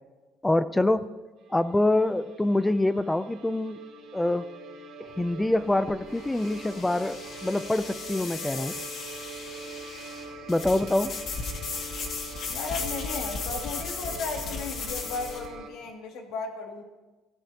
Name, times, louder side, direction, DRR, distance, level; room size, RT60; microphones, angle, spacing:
voice 1, 0.4-1.1 1.5-3.8 4.1-4.5 5.2-8.7 10.5-11.2, left 1 dB, 10° left, 14 dB, 0.4 m, -25 dB
sound 1, 1.4-15.7, right 3 dB, 75° right, 2.8 m, -44 dB
sound 2, 5.1-15.5, left 4 dB, 50° left, 2.2 m, -36 dB
voice 2, 12.5-16.8, left 4 dB, 75° left, 2 dB, 2.4 m, -35 dB
24.5 x 15.5 x 2.9 m, 1.2 s
cardioid pair, 155°, 0 cm